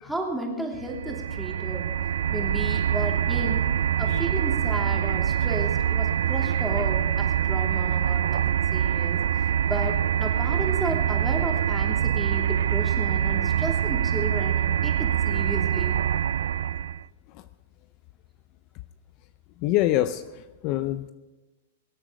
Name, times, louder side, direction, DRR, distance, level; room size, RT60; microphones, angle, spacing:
voice 1, 0.0-1.9 2.3-3.6 4.0-9.2 9.6-16.0, right 1 dB, 5° right, -1 dB, 3.0 m, -33 dB
sound 1, 0.8-17.0, right 9 dB, 80° right, 0.3 m, -25 dB
voice 2, 19.6-21.1, left 14 dB, 40° left, 13 dB, 0.5 m, -26 dB
23.0 x 8.8 x 5.1 m, 1.1 s
hypercardioid pair, 140°, 0 cm